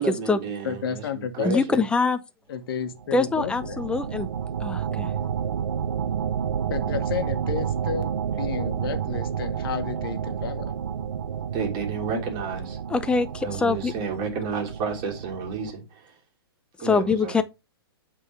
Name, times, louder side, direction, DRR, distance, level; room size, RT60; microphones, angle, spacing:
voice 1, 0.0-1.8 11.5-12.8 13.4-16.1 16.8-17.4, right 5 dB, 30° right, 2.8 m, -31 dB
voice 2, 0.6-1.9 2.5-3.8 6.7-10.7, left 7 dB, 65° left, 1.3 m, -32 dB
voice 3, 1.4-2.2 3.1-4.3 4.6-5.1 12.9-13.9 16.8-17.4, left 4 dB, 5° left, 0.5 m, -23 dB
sound 1, 2.9-15.7, right 8 dB, 90° right, 0.6 m, -30 dB
8.2 x 3.8 x 4.7 m
hypercardioid pair, 140°, 13 cm